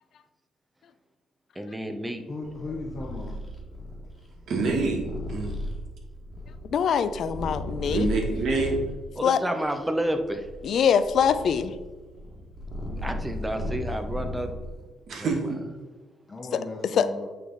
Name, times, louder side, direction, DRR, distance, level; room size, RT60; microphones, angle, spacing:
voice 1, 1.6-2.2 9.2-10.5 13.0-14.5 15.2-15.3, right 1 dB, 10° right, 6 dB, 0.7 m, -30 dB
voice 2, 2.3-3.4 12.8-13.3 16.3-17.3, left 2 dB, 25° left, -1 dB, 0.8 m, -37 dB
Purr, 2.4-9.0 9.6-14.9, left 1 dB, 10° left, 1.7 m, -35 dB
voice 3, 4.5-5.6 7.8-8.8 15.1-15.6, right 3 dB, 65° right, 1 dB, 1.5 m, -27 dB
voice 4, 6.6-8.1 9.2-9.4 10.6-11.7 16.9-17.1, left 7 dB, 65° left, 12 dB, 0.4 m, -23 dB
8.2 x 3.3 x 3.9 m, 1.3 s
cardioid pair, 90°, 0 cm